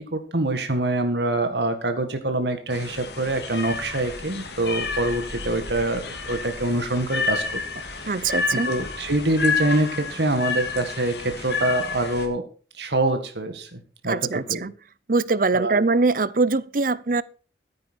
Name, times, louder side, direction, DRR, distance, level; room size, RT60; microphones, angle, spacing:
voice 1, 0.0-7.6 8.1-12.5 12.8-14.6 15.5-15.8, right 2 dB, 75° right, 1.8 m, -25 dB
sound 1, 2.7-12.3, left 4 dB, 70° left, 2.6 m, -30 dB
voice 2, 8.1-8.7 14.1-14.7 15.1-17.2, right 3 dB, 50° right, 0.7 m, -22 dB
13.5 x 9.8 x 4.3 m
head